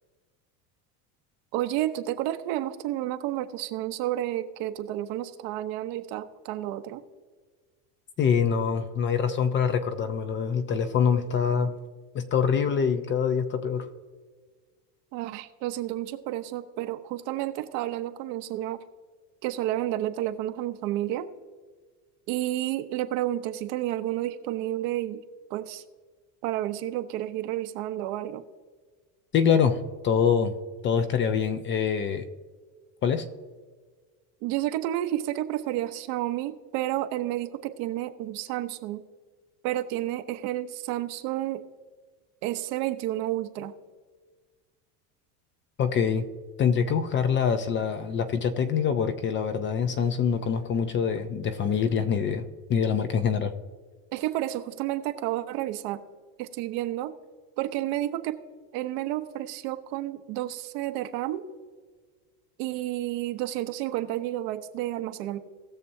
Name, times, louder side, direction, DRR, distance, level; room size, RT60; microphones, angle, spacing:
voice 1, 1.5-7.0 15.1-18.8 19.4-21.3 22.3-25.2 25.5-25.8 26.4-28.4 34.4-39.0 39.6-41.6 42.4-43.7 54.1-56.0 56.4-57.1 57.6-58.4 58.7-61.5 62.6-65.4, right 14 dB, 65° right, 9 dB, 0.9 m, -31 dB
voice 2, 8.2-11.7 12.1-13.9 29.3-29.8 30.0-30.5 30.8-32.3 33.0-33.2 45.8-46.2 46.6-53.5, left 7 dB, 25° left, 9 dB, 0.5 m, -25 dB
19.0 x 6.8 x 2.7 m, 1.5 s
supercardioid pair, 140°, 46 cm